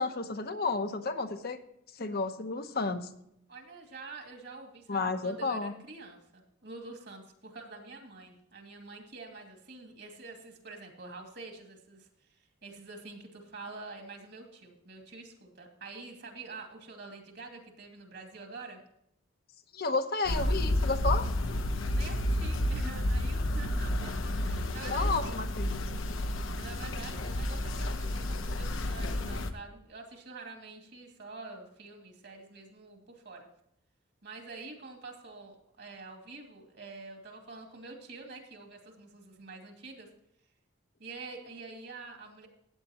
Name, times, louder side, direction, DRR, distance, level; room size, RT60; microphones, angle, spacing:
voice 1, 0.0-1.6 2.0-3.1 4.9-5.7 19.7-21.3 24.9-25.8, left 3 dB, 50° left, 6 dB, 1.0 m, -31 dB
voice 2, 3.5-18.8 21.8-25.4 26.5-33.5 34.2-40.1 41.0-42.5, right 3 dB, 55° right, 3 dB, 2.5 m, -47 dB
sound 1, 20.2-29.5, left 1 dB, 75° left, 1.0 m, -31 dB
15.5 x 9.1 x 3.0 m, 0.75 s
head